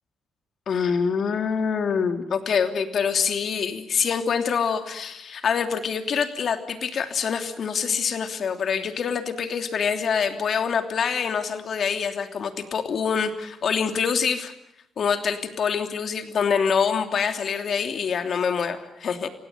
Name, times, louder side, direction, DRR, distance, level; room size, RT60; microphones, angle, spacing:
voice 1, 0.7-14.5 15.0-19.3, left 6 dB, 55° left, 7 dB, 3.0 m, -25 dB
28.5 x 17.5 x 9.4 m, 0.84 s
cardioid pair, 90°, 0 cm